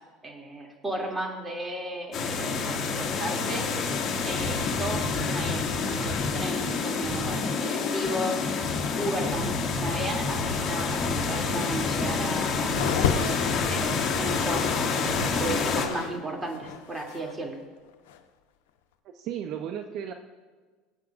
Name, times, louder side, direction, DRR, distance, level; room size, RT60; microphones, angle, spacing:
voice 1, 0.2-3.7 4.2-8.5 8.9-13.4 13.7-17.6, right 1 dB, 15° right, 0 dB, 2.7 m, -34 dB
sound 1, 2.1-15.9, left 4 dB, 40° left, 2.1 m, -28 dB
sound 2, 12.7-16.2 16.4-17.3 18.1-18.2, left 8 dB, 85° left, 0.7 m, -32 dB
voice 2, 19.0-20.1, right 9 dB, 55° right, 6 dB, 0.7 m, -34 dB
23.0 x 8.3 x 2.5 m, 1.4 s
supercardioid pair, 100°, 0 cm